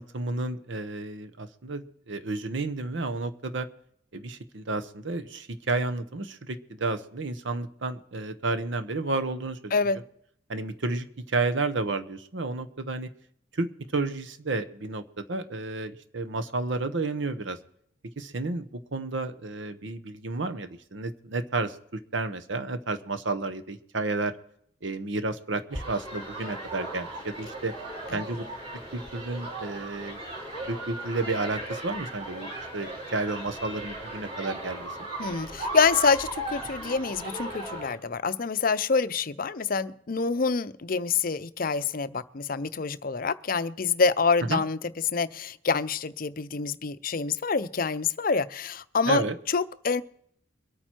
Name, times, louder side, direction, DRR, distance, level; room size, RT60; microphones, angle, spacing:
voice 1, 0.0-3.7 4.1-9.7 10.5-13.1 13.5-17.6 18.2-24.3 24.8-27.7 28.1-28.4 28.9-30.2 30.7-34.9 44.5-44.6 49.1-49.4, right 3 dB, 65° right, 11 dB, 0.9 m, -31 dB
sound 1, 25.7-37.9, right 1 dB, 30° right, 4.5 m, -37 dB
voice 2, 35.2-44.8 45.1-50.0, left 5 dB, 45° left, 14 dB, 0.6 m, -26 dB
23.0 x 9.0 x 4.5 m, 0.66 s
head